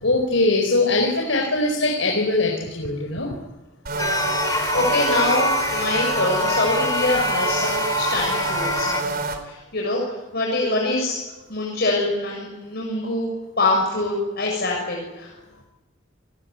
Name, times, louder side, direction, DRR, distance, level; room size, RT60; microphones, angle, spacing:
voice 1, 0.0-3.4 4.9-5.0, left 2 dB, 85° left, 1 dB, 4.7 m, -21 dB
voice 2, 3.9-9.2 9.4-11.2 11.5-13.3 13.6-15.3, left 2 dB, 55° left, -1 dB, 7.0 m, -25 dB
sound 1, 3.9-9.4, right 4 dB, 50° right, 3.9 m, -27 dB
sound 2, 4.0-9.0, left 3 dB, 20° left, 2.8 m, -26 dB
28.0 x 22.0 x 9.6 m, 1.0 s
head